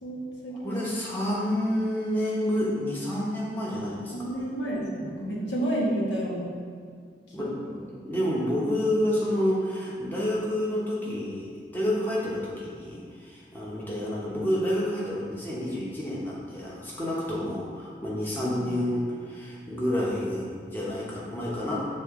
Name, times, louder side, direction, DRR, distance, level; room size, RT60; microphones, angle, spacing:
voice 1, 0.0-0.7 4.1-6.5 7.3-7.8 18.4-18.7, right 1 dB, 85° left, -4 dB, 1.3 m, -31 dB
voice 2, 0.6-4.3 7.3-7.5 7.9-21.8, left 1 dB, 10° left, -6 dB, 0.9 m, -29 dB
7.6 x 3.4 x 3.7 m, 2.1 s
head